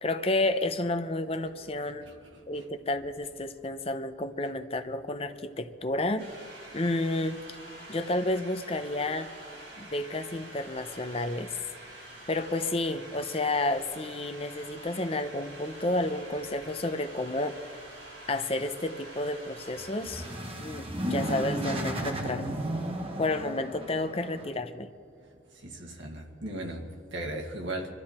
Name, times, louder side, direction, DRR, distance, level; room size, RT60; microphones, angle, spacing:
voice 1, 0.0-2.1 2.5-6.2 6.7-7.6 7.9-9.3 9.8-11.6 12.3-17.6 18.3-20.3 20.6-22.6 23.2-24.9, left 2 dB, 30° left, 8 dB, 0.7 m, -31 dB
sound 1, 6.2-20.3, right 1 dB, 65° right, 5.1 m, -47 dB
sound 2, 19.8-24.5, right 1 dB, 30° right, 1.5 m, -34 dB
voice 2, 25.6-27.9, right 1 dB, 90° right, 1 dB, 1.9 m, -36 dB
25.0 x 12.5 x 4.4 m, 2.2 s
head